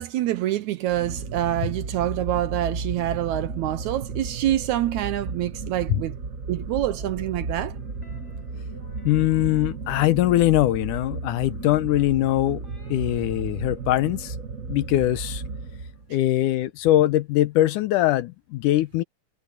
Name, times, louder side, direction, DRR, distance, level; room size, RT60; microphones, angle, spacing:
voice 1, 0.0-6.1 6.5-7.8, right 13 dB, 75° right, 1.9 m, -26 dB
sound 1, 0.9-16.2, right 4 dB, 50° right, 1.0 m, -34 dB
sound 2, 6.8-11.0 12.1-14.0, left 3 dB, 20° left, 6.4 m, -54 dB
voice 2, 9.0-12.6 12.9-14.4 14.7-15.4 16.1-19.0, left 15 dB, 80° left, 2.2 m, -22 dB
omnidirectional pair, 3.8 m